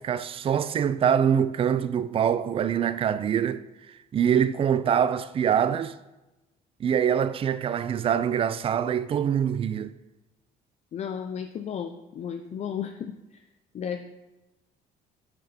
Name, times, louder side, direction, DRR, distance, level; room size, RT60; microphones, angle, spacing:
voice 1, 0.0-3.6 4.1-5.9 6.8-9.9, right 8 dB, 35° right, 0.4 m, -24 dB
voice 2, 10.9-13.2 13.7-14.0, left 8 dB, 40° left, 0.5 m, -33 dB
6.4 x 6.0 x 4.3 m
cardioid pair, 110°, 17 cm